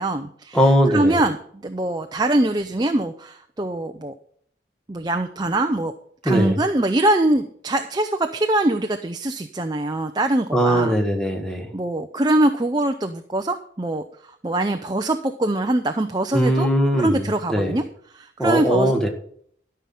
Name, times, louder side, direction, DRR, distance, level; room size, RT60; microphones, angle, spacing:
voice 1, 0.0-4.1 4.9-5.9 6.2-10.9 11.7-16.7 17.0-17.8 18.1-19.0, right 1 dB, 25° right, 6 dB, 0.6 m, -23 dB
voice 2, 0.5-1.2 6.2-6.6 10.5-11.7 16.3-17.8 18.4-19.1, equal, 5° left, 3 dB, 1.7 m, -20 dB
13.0 x 5.7 x 7.6 m, 0.63 s
head